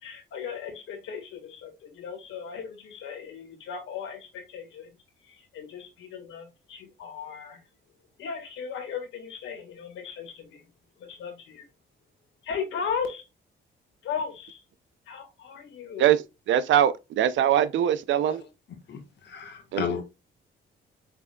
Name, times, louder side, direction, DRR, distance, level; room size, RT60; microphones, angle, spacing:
voice 1, 0.0-4.9 5.2-7.6 8.2-10.7 11.0-11.6 12.4-13.3 14.0-14.6 15.1-16.1, left 6 dB, 80° left, 1.7 m, -36 dB
voice 2, 16.5-18.4 19.7-19.8, right 10 dB, 70° right, 0.6 m, -22 dB
voice 3, 18.9-20.0, left 7 dB, 60° left, 1.4 m, -33 dB
5.9 x 3.5 x 2.3 m
cardioid pair, 90°, 20 cm